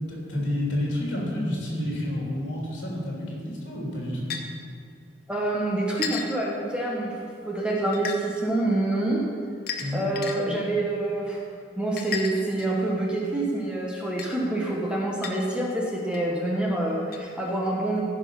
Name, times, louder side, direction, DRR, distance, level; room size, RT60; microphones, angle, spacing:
voice 1, 0.0-4.3 9.8-10.0, left 1 dB, 75° left, -4 dB, 3.3 m, -29 dB
sound 1, 4.3-4.4 6.0-6.3 7.9-8.2 9.7-10.4 12.0-12.8 14.2-14.3 15.2-15.3 16.1-16.2 17.1-17.2, left 6 dB, 50° left, 0.9 m, -32 dB
voice 2, 5.3-7.2 7.5-9.2 9.9-11.4 11.8-18.0, right 1 dB, 5° right, -3 dB, 1.2 m, -27 dB
15.0 x 5.4 x 5.8 m, 2.2 s
head